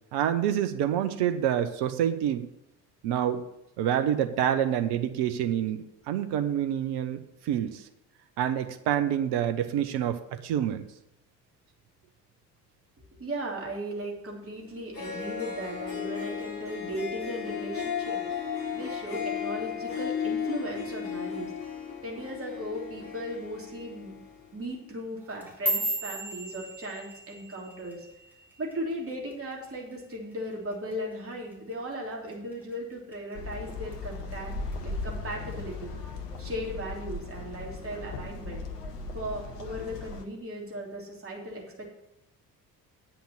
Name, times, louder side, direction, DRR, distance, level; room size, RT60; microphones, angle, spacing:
voice 1, 0.1-2.5 3.0-3.4 3.8-7.8 8.4-10.8, right 10 dB, 55° right, 9 dB, 1.0 m, -27 dB
voice 2, 13.2-18.3 18.7-21.5 22.0-24.2 24.5-28.1 28.6-34.5 34.8-35.9 36.4-38.7 39.1-41.9, right 1 dB, 25° right, -1 dB, 3.2 m, -37 dB
Harp, 14.6-14.7 14.9-24.5, left 7 dB, 25° left, 4.8 m, -35 dB
sound 1, 25.2-29.6 29.9-30.3 30.7-31.1 31.5-31.7 32.3-32.7 33.1-33.9 34.3-34.7 35.5-35.6, right 1 dB, 5° right, 3.7 m, -35 dB
sound 2, 33.3-40.2, left 3 dB, 75° left, 1.0 m, -37 dB
8.8 x 5.8 x 7.4 m, 0.85 s
figure-of-eight pair, 50°, 48 cm